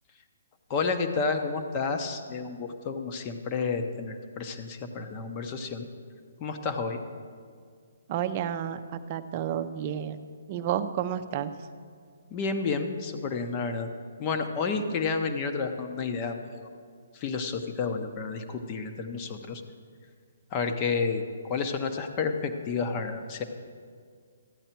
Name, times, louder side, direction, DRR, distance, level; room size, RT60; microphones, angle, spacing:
voice 1, 0.7-5.9 6.4-7.0 12.3-13.9 14.2-16.7 17.1-19.6 20.5-23.4, left 4 dB, 30° left, 6 dB, 0.9 m, -30 dB
voice 2, 8.1-10.2 10.5-11.5, right 10 dB, 35° right, 9 dB, 0.6 m, -31 dB
13.5 x 9.0 x 4.5 m, 2.1 s
hypercardioid pair, 150°, 0 cm